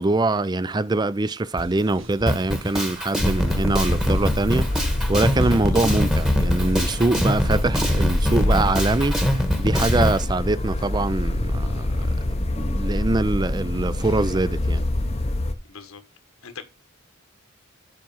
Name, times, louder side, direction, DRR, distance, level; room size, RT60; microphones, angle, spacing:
voice 1, 0.0-12.0 12.3-14.9, right 2 dB, 20° right, 0.4 m, -24 dB
sound 1, 1.6-8.4, right 1 dB, 60° right, 2.2 m, -42 dB
Drum kit, 2.3-10.2, equal, 5° right, 1.2 m, -24 dB
sound 2, 3.2-15.5, left 1 dB, 30° left, 0.7 m, -25 dB
voice 2, 15.7-16.0 16.4-16.6, left 5 dB, 75° left, 1.5 m, -41 dB
7.6 x 6.0 x 5.5 m
head